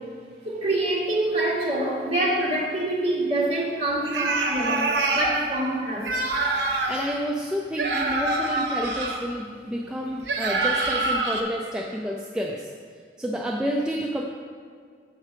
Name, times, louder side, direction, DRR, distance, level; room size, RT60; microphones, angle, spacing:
voice 1, 0.4-6.1, right 1 dB, 35° right, -5 dB, 1.6 m, -26 dB
sound 1, 4.0-5.3 6.0-7.0 7.8-9.2 10.3-11.4, right 2 dB, 75° right, 0.8 m, -25 dB
voice 2, 6.9-12.7 13.2-14.2, equal, 5° right, -2 dB, 0.4 m, -29 dB
6.7 x 5.8 x 4.4 m, 2.1 s
head